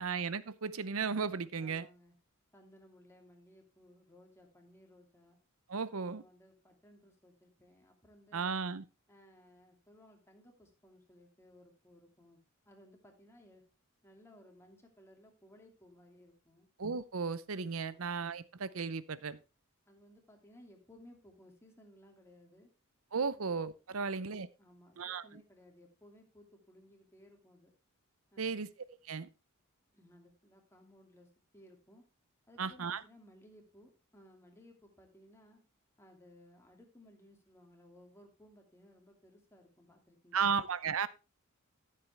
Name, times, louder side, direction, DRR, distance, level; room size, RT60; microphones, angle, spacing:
voice 1, 0.0-1.9 5.7-6.2 8.3-8.8 16.8-19.4 23.1-24.5 25.0-25.3 28.4-28.7 29.0-29.3 32.6-33.0 40.3-41.1, right 5 dB, 75° right, 0.7 m, -35 dB
voice 2, 1.5-2.1 2.5-5.4 5.9-8.6 9.1-13.6 14.0-16.7 17.9-18.2 19.9-22.7 23.3-23.5 23.9-24.2 24.6-27.7 28.3-28.7 29.9-32.0 32.5-35.6 36.0-40.6, left 1 dB, 10° left, 2.6 m, -60 dB
14.0 x 7.6 x 3.4 m
head